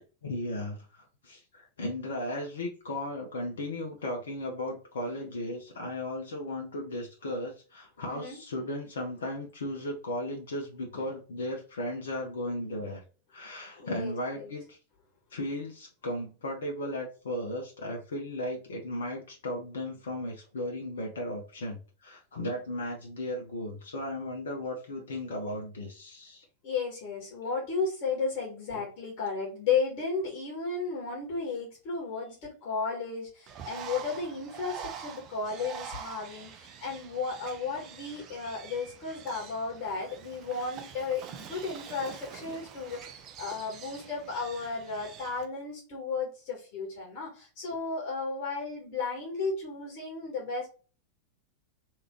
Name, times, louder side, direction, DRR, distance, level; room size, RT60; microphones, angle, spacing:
voice 1, 0.2-13.0 13.3-14.8 15.3-26.4 28.7-28.8, left 1 dB, 65° left, 1 dB, 0.9 m, -36 dB
voice 2, 8.1-8.4 13.8-14.5 26.6-50.7, left 4 dB, 45° left, -2 dB, 1.6 m, -34 dB
Bird, 33.5-45.5, right 8 dB, 35° right, 0.6 m, -45 dB
3.6 x 3.1 x 3.0 m, 0.36 s
figure-of-eight pair, 90°, 0 cm